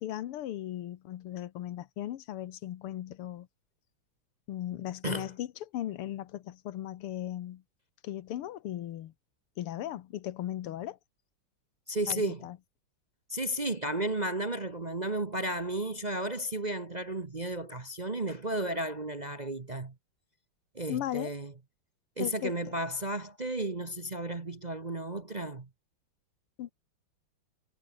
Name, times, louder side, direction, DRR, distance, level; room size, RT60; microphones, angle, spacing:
voice 1, 0.0-3.5 4.5-7.6 8.0-9.1 9.6-11.0 12.1-12.6 20.9-21.3 22.2-22.6 26.6-26.7, left 12 dB, 85° left, 1.9 m, -37 dB
voice 2, 11.9-12.4 13.3-19.9 20.7-21.5 22.2-25.7, right 1 dB, 30° right, 0.9 m, -33 dB
omnidirectional pair, 2.4 m